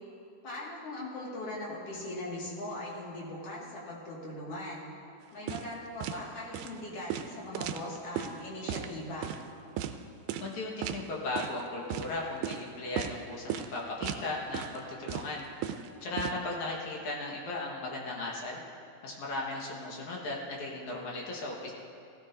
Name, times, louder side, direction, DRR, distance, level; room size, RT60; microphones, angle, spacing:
voice 1, 0.4-4.9 5.3-9.3, left 1 dB, 50° left, -5 dB, 3.0 m, -40 dB
sound 1, 5.5-5.7 6.0-6.2 6.5-6.7 7.1-8.3 8.7-8.9 9.2-9.4 9.8-9.9 10.3-10.5 10.8-11.0 11.4-11.6 11.9-12.1 12.4-12.6 13.0-13.2 13.5-13.7 14.0-14.3 14.5-14.8 15.1-16.3, right 10 dB, 85° right, 2.0 m, -35 dB
voice 2, 10.4-15.5 16.0-18.6 19.0-21.7, left 2 dB, 70° left, -2 dB, 2.8 m, -36 dB
16.5 x 15.5 x 2.7 m, 2.8 s
omnidirectional pair, 3.6 m